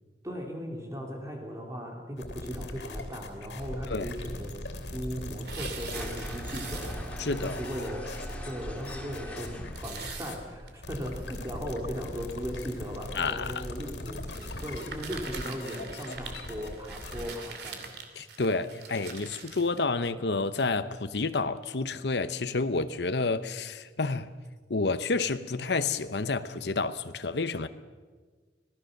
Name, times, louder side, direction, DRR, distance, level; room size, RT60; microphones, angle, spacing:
voice 1, 0.2-4.5 4.9-8.1 8.4-9.5 9.8-14.2 14.6-17.9, equal, 20° right, 2.9 m, -37 dB
sound 1, 2.2-17.3, left 1 dB, 90° left, 3.0 m, -40 dB
tear paper and plastic paper, 5.2-7.3 7.6-7.7 8.2-8.3 8.6-8.7 9.8-11.4 12.0-12.1 13.0-13.3 14.3-19.7, right 5 dB, 65° right, 2.6 m, -43 dB
sound 2, 5.9-12.6, equal, 10° left, 2.4 m, -42 dB
voice 2, 7.2-7.6 13.1-13.7 18.2-24.3 24.7-27.7, left 3 dB, 70° left, 0.9 m, -29 dB
26.0 x 17.5 x 6.6 m
head